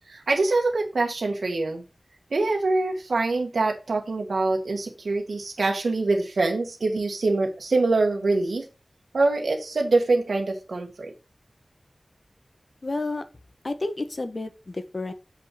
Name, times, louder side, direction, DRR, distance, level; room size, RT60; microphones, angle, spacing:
voice 1, 0.1-1.8 2.3-8.7 9.1-11.1, right 3 dB, 85° right, 2 dB, 1.5 m, -24 dB
voice 2, 12.8-13.3 13.6-15.1, left 2 dB, 45° left, 9 dB, 1.3 m, -30 dB
7.6 x 5.6 x 5.8 m, 0.31 s
wide cardioid pair, 75°, 0 cm